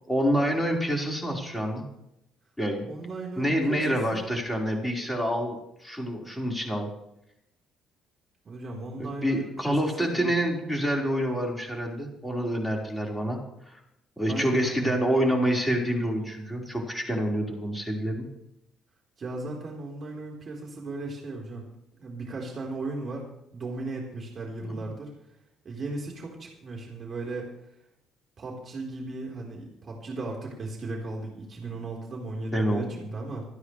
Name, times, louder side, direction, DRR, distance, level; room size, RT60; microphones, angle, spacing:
voice 1, 0.1-1.8 2.6-2.9 3.4-5.5 5.8-6.9 9.0-13.4 14.2-18.3 32.5-33.1, equal, 10° left, -1 dB, 4.8 m, -27 dB
voice 2, 2.9-4.3 8.4-10.3 14.3-14.9 19.2-21.6 22.0-23.2 23.5-25.1 25.6-27.5 28.4-33.5, right 2 dB, 45° right, -2 dB, 4.2 m, -36 dB
28.5 x 9.7 x 3.4 m, 0.83 s
hypercardioid pair, 55°, 0 cm